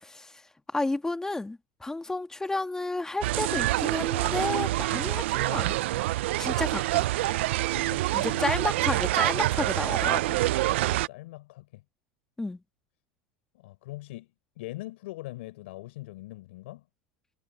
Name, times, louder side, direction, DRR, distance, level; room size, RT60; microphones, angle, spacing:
voice 1, 0.0-5.8 6.4-7.1 8.1-10.4 12.4-12.6, left 2 dB, 10° left, 1.6 m, -32 dB
sound 1, 3.2-11.1, right 16 dB, 85° right, 0.4 m, -26 dB
voice 2, 7.6-8.4 11.1-11.8 13.5-14.3 14.6-16.9, left 18 dB, 80° left, 4.2 m, -42 dB
supercardioid pair, 120°, 6 cm